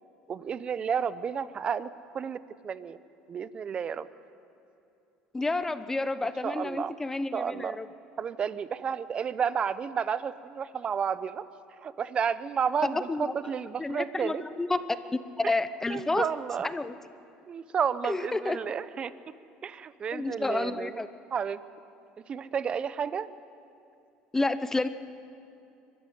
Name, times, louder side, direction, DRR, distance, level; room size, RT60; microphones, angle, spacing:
voice 1, 0.3-3.0 3.3-4.1 6.4-6.9 7.3-7.8 8.2-11.4 11.8-14.4 15.4-15.5 15.9-16.7 17.5-19.1 19.6-21.0 21.3-21.6 22.3-23.3, right 7 dB, 35° right, 15 dB, 0.8 m, -31 dB
voice 2, 5.3-7.9 12.8-13.3 13.8-14.8 15.4-16.3 16.6-16.9 18.0-18.6 20.1-21.1 24.3-24.9, left 2 dB, 15° left, 12 dB, 0.9 m, -30 dB
23.0 x 13.0 x 9.6 m, 2.8 s
supercardioid pair, 100°, 3 cm